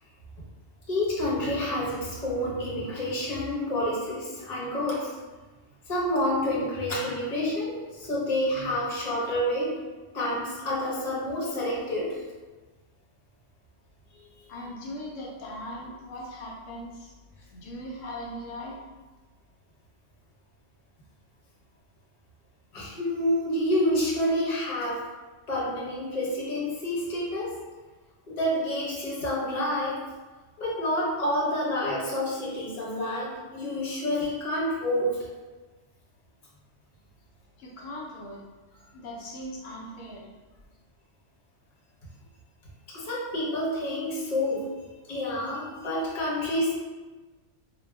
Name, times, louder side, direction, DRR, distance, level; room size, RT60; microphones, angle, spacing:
voice 1, 0.9-5.1 5.9-9.7 10.1-12.2 14.4-14.5 22.7-25.0 25.5-27.5 28.3-30.0 30.6-35.2 42.9-44.7 45.1-46.8, left 1 dB, 35° left, -5 dB, 0.8 m, -28 dB
voice 2, 14.5-17.2 17.5-18.8 37.6-38.4 38.9-40.3, left 1 dB, 80° left, -2 dB, 1.0 m, -39 dB
4.4 x 2.3 x 2.2 m, 1.3 s
omnidirectional pair, 1.3 m